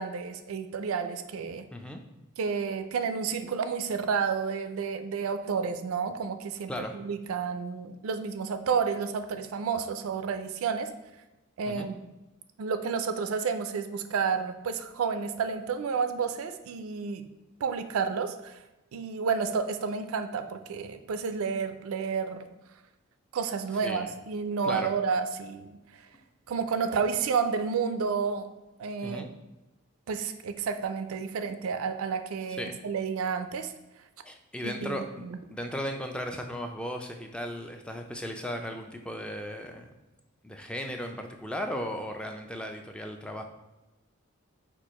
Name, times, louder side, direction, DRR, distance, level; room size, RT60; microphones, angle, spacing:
voice 1, 0.0-1.6 2.4-10.9 11.6-12.0 12.6-17.2 17.6-18.6 18.9-22.4 23.3-25.7 26.5-28.5 28.8-29.3 30.1-33.7 34.6-35.4, right 5 dB, 85° right, 9 dB, 0.4 m, -30 dB
voice 2, 1.7-2.0 6.7-6.9 11.7-11.9 23.8-24.1 24.6-24.9 29.0-29.3 32.6-32.8 34.2-39.9 40.4-43.4, equal, 5° left, 4 dB, 0.3 m, -36 dB
4.5 x 2.5 x 4.1 m, 1.0 s
head